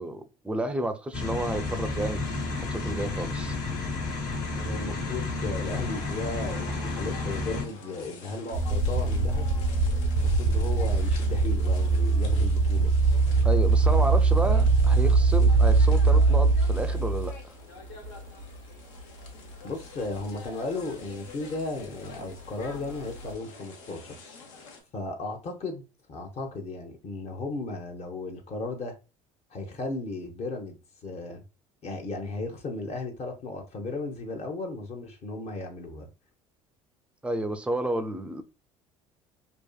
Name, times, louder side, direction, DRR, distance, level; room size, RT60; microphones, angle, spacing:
voice 1, 0.0-2.2 2.5-3.6 13.4-17.3 37.2-38.4, right 1 dB, 5° right, 0.4 m, -31 dB
sound 1, 1.1-7.6, left 3 dB, 55° left, 1.2 m, -31 dB
voice 2, 4.5-9.5 10.2-12.9 19.6-24.2 24.9-25.8 26.1-28.9 29.5-31.4 31.8-36.1, left 3 dB, 40° left, 0.7 m, -35 dB
sound 2, 5.5-24.8, left 3 dB, 75° left, 0.7 m, -47 dB
sound 3, 8.5-17.3 18.0-18.4 19.0-19.1 22.7-23.3, right 3 dB, 80° right, 0.5 m, -22 dB
2.6 x 2.4 x 2.2 m
hypercardioid pair, 70°, 17 cm